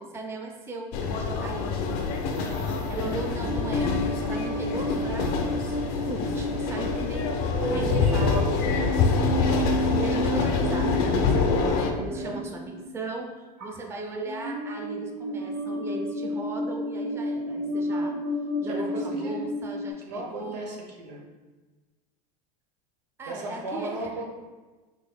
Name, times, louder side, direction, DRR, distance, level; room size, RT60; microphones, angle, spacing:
voice 1, 0.0-1.7 2.9-4.0 4.2-8.9 9.5-18.2 18.6-20.8 23.2-24.1, right 2 dB, 10° right, 1 dB, 0.4 m, -37 dB
sound 1, 0.9-11.9, left 4 dB, 65° left, 0.5 m, -26 dB
voice 2, 2.3-3.0 11.6-12.4 18.6-19.5 20.0-21.2 23.3-24.2, right 2 dB, 85° right, 0 dB, 0.8 m, -37 dB
sound 2, 3.4-12.8 13.6-13.9 14.3-19.9, equal, 45° right, 0.9 m, -31 dB
4.0 x 3.1 x 2.3 m, 1.3 s
hypercardioid pair, 105°, 21 cm